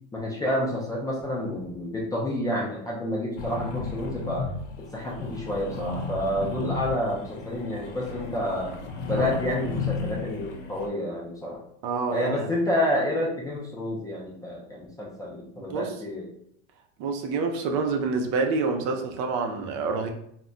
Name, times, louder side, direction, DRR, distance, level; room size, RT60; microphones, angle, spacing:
voice 1, 0.1-4.5 4.8-8.7 9.1-11.6 12.1-16.3, left 1 dB, 10° left, -4 dB, 0.3 m, -29 dB
sound 1, 3.4-10.9, left 4 dB, 85° left, 0.7 m, -34 dB
voice 2, 11.8-12.5 15.7-15.9 17.0-20.1, right 4 dB, 55° right, 4 dB, 0.6 m, -27 dB
2.2 x 2.1 x 3.7 m, 0.70 s
supercardioid pair, 120°, 36 cm